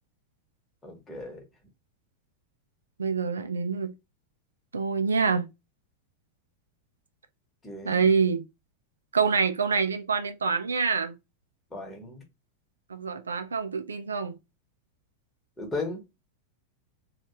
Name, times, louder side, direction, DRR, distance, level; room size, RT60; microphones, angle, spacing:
voice 1, 0.8-1.4 7.6-8.1 11.7-12.2 15.6-16.0, left 3 dB, 10° left, 1.2 m, -36 dB
voice 2, 3.0-3.9 4.7-5.5 7.8-8.4 9.1-11.1 12.9-14.3, right 5 dB, 75° right, 0.4 m, -26 dB
3.2 x 2.4 x 2.8 m
figure-of-eight pair, 90°, 0 cm